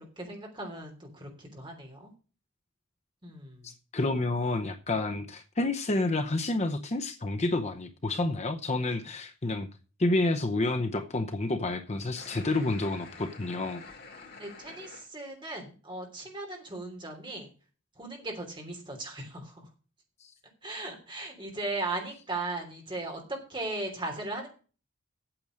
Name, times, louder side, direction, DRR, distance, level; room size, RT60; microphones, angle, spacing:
voice 1, 0.0-2.1 3.2-3.7 14.4-17.5 18.0-19.7 20.6-24.5, right 2 dB, 25° right, 2 dB, 3.1 m, -37 dB
voice 2, 3.6-9.7 10.0-13.8 20.2-20.3, left 2 dB, 35° left, 7 dB, 0.7 m, -29 dB
sound 1, 12.1-15.1, left 4 dB, 50° left, 2.5 m, -48 dB
8.8 x 7.8 x 6.3 m, 0.36 s
head